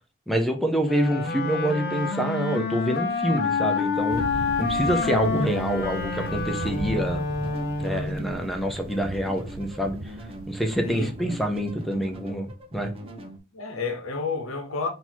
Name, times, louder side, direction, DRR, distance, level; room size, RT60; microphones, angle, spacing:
voice 1, 0.3-4.3 4.6-7.2 7.8-10.1 10.5-12.5 12.7-12.9, right 1 dB, ahead, 0.7 m, -26 dB
Wind instrument woodwind instrument, 0.8-8.3, left 4 dB, 50° left, 0.6 m, -28 dB
sound 1, 3.4-13.4, equal, 30° right, 0.9 m, -42 dB
Thunder, 4.1-12.3, right 2 dB, 75° right, 0.5 m, -39 dB
voice 2, 10.8-11.4 13.5-14.9, left 4 dB, 90° left, 1.0 m, -31 dB
3.9 x 2.8 x 4.4 m
head